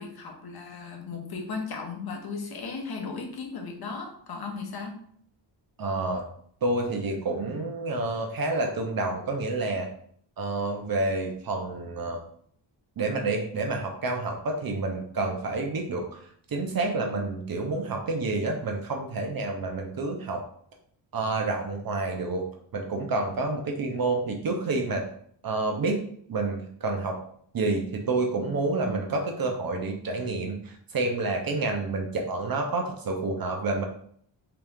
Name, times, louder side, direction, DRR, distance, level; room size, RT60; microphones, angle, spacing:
voice 1, 0.0-5.0, left 4 dB, 50° left, 2 dB, 0.9 m, -36 dB
voice 2, 5.8-6.2 6.6-9.9 10.4-12.2 13.0-16.2 16.5-20.4 21.1-22.4 22.7-25.0 25.4-26.0 26.3-27.2 27.5-33.8, right 3 dB, 50° right, 2 dB, 0.6 m, -29 dB
3.5 x 3.0 x 3.4 m, 0.62 s
wide cardioid pair, 145°, 46 cm